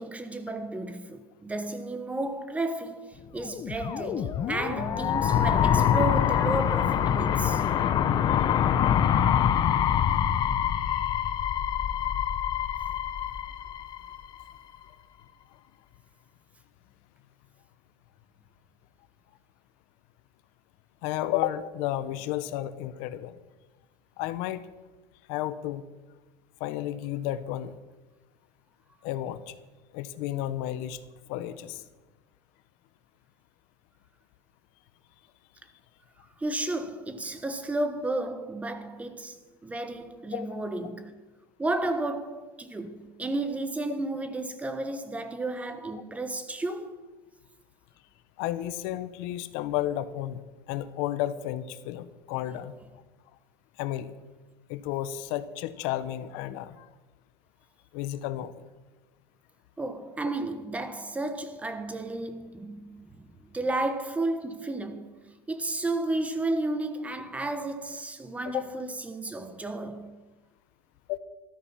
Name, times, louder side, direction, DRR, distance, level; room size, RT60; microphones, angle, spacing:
voice 1, 0.0-7.7 36.2-41.1 41.6-46.9 59.8-70.2, right 2 dB, 10° right, 1.2 m, -33 dB
sound 1, 3.5-14.4, left 9 dB, 40° left, 0.9 m, -25 dB
voice 2, 10.8-11.1 21.0-23.3 24.2-24.6 25.3-25.8 26.6-27.7 29.0-29.4 29.9-31.0 31.3-31.8 40.3-40.6 48.4-50.4 50.7-52.7 53.8-54.1 54.7-56.9 57.9-58.6 68.5-68.6 71.1-71.2, left 13 dB, 70° left, 1.0 m, -32 dB
13.0 x 13.0 x 5.8 m
cardioid pair, 135°, 12 cm